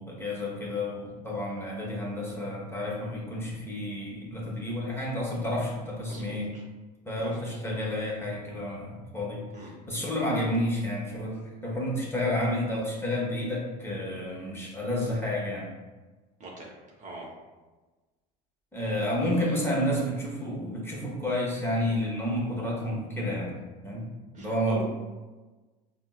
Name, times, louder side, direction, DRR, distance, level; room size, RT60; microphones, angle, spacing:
voice 1, 0.0-6.5 7.0-15.7 18.7-23.5 23.8-24.1 24.4-24.8, left 1 dB, 10° left, -4 dB, 0.9 m, -30 dB
voice 2, 6.1-6.6 7.2-7.6 9.5-9.7 16.4-16.7 17.0-17.4 19.2-19.6 24.3-24.8, right 2 dB, 35° right, -2 dB, 0.6 m, -43 dB
4.3 x 2.0 x 2.3 m, 1.2 s
supercardioid pair, 95°, 21 cm